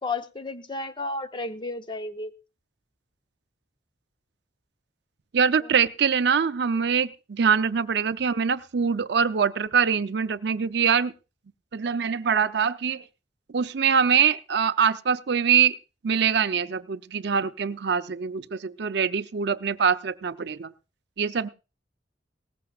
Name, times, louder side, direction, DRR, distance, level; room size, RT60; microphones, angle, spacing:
voice 1, 0.0-2.3 5.6-5.7, left 3 dB, 25° left, 9 dB, 0.7 m, -32 dB
voice 2, 5.3-11.1 11.7-13.0 13.5-15.8 16.0-20.7 21.2-21.5, right 7 dB, 70° right, 13 dB, 0.5 m, -24 dB
18.5 x 14.5 x 2.4 m, 0.31 s
head